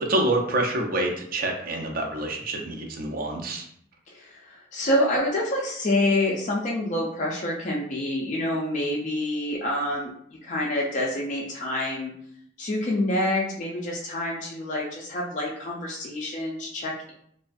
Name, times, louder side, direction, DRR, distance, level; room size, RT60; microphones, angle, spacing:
voice 1, 0.0-3.7, right 1 dB, 50° right, 1 dB, 0.5 m, -27 dB
voice 2, 4.1-10.1 10.4-12.1 12.6-17.1, left 1 dB, 40° left, -3 dB, 0.4 m, -27 dB
2.4 x 2.2 x 2.4 m, 0.67 s
head